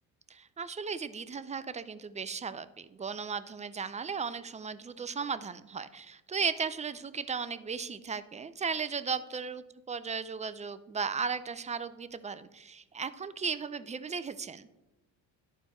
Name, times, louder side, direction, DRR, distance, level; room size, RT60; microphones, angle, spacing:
voice 1, 0.3-14.7, right 5 dB, 20° right, 14 dB, 0.4 m, -36 dB
11.0 x 4.6 x 4.2 m, 0.99 s
cardioid pair, 85°, 41 cm